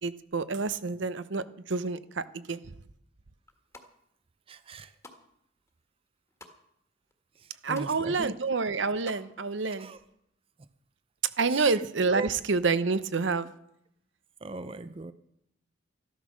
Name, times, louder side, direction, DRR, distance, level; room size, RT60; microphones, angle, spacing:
voice 1, 0.0-2.6 7.6-9.9 11.4-13.5, right 4 dB, 75° right, 14 dB, 0.8 m, -28 dB
sound 1, 3.4-3.9 4.5-5.2 5.6-6.6 7.1-7.2 7.4-8.0 8.3-9.2 9.5-9.6, left 2 dB, 15° left, 1.7 m, -51 dB
voice 2, 4.5-4.9 7.4-8.3 9.7-10.0 11.5-12.3 14.4-15.1, right 3 dB, 30° right, 13 dB, 0.5 m, -39 dB
14.0 x 12.0 x 6.3 m, 0.76 s
head